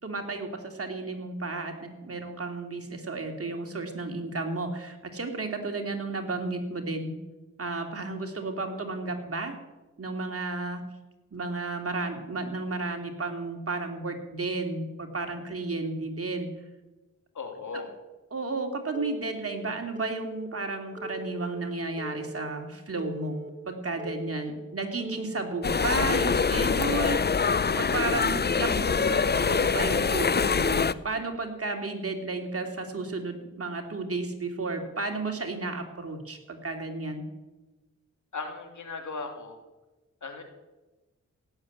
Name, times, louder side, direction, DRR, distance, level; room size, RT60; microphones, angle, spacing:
voice 1, 0.0-7.1 7.6-9.5 10.0-10.8 11.3-16.5 17.7-17.8 18.3-37.2, right 3 dB, 50° right, 4 dB, 3.0 m, -33 dB
voice 2, 17.3-17.9 38.3-39.6 40.2-40.4, left 4 dB, 70° left, 4 dB, 3.0 m, -37 dB
Telephone, 18.9-19.5 19.9-20.5 21.0-21.5 22.0-22.5 23.0-23.5 24.0-24.5 25.0-25.5 26.0-26.5, right 1 dB, 25° right, 2.9 m, -40 dB
sound 1, 25.6-30.9, left 5 dB, 35° left, 0.6 m, -24 dB
16.5 x 7.6 x 9.7 m, 1.1 s
cardioid pair, 50°, 31 cm